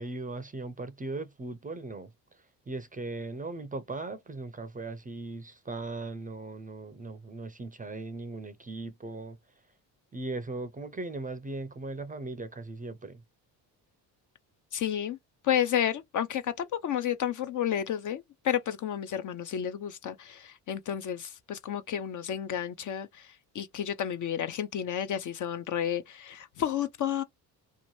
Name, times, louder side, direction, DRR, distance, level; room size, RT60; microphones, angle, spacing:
voice 1, 0.0-2.1 2.7-9.4 10.1-13.2, right 2 dB, 15° right, 0.5 m, -38 dB
voice 2, 14.7-15.2 15.4-27.2, left 10 dB, 40° left, 0.4 m, -31 dB
2.8 x 2.1 x 3.0 m
hypercardioid pair, 55°, 49 cm